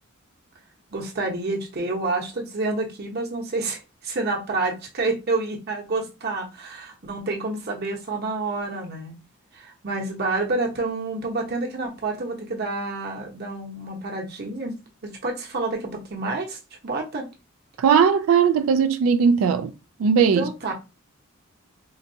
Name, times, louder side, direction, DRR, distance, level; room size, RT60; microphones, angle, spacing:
voice 1, 0.9-9.1 9.5-14.7 15.0-16.6 16.8-17.3 20.3-20.7, right 3 dB, 50° right, 0.9 m, -28 dB
voice 2, 17.8-19.7 20.0-20.5, right 6 dB, 80° right, 0.3 m, -18 dB
3.8 x 2.2 x 2.7 m
head